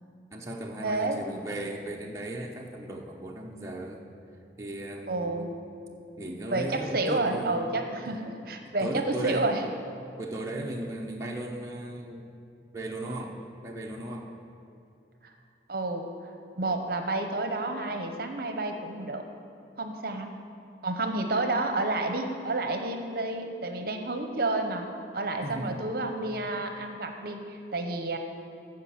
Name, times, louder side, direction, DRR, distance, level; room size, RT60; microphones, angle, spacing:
voice 1, 0.3-4.0 4.6-5.4 6.2-7.6 8.0-8.2 8.8-9.5 10.2-12.3 12.7-14.3 25.4-25.8, right 1 dB, 15° right, -1 dB, 0.8 m, -36 dB
voice 2, 0.8-1.2 5.1-5.5 6.5-9.6 15.2-15.3 15.7-16.1 16.6-19.2 19.8-20.3 20.8-24.9 25.1-28.2, right 2 dB, 55° right, 5 dB, 0.8 m, -30 dB
14.5 x 4.9 x 7.2 m, 2.6 s
head